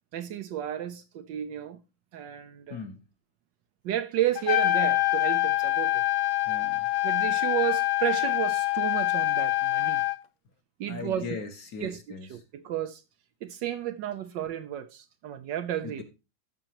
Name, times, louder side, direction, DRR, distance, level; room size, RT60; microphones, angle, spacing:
voice 1, 0.1-1.8 2.1-2.8 3.8-6.1 7.0-10.0 10.8-11.3 11.8-12.0 12.3-13.0 13.4-16.0, right 11 dB, 70° right, 1.2 m, -32 dB
voice 2, 2.7-3.0 6.4-6.9 10.9-12.4 15.8-16.0, left 5 dB, 50° left, 1.5 m, -39 dB
Trumpet, 4.4-10.2, left 16 dB, 75° left, 1.4 m, -25 dB
14.0 x 6.0 x 2.9 m
omnidirectional pair, 2.2 m